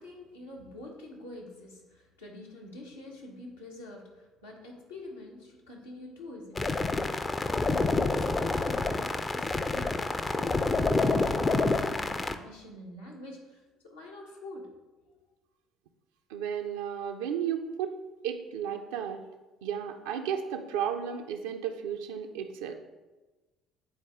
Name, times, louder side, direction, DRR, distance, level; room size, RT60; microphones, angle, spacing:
voice 1, 0.0-6.9 7.5-15.2, left 1 dB, 80° left, -3 dB, 1.2 m, -46 dB
sound 1, 6.6-12.3, left 3 dB, 25° left, 0.5 m, -28 dB
voice 2, 16.3-18.0 18.2-19.2 19.6-22.7, right 8 dB, 70° right, 4 dB, 0.4 m, -33 dB
9.4 x 4.0 x 3.6 m, 1.2 s
figure-of-eight pair, 50°, 0 cm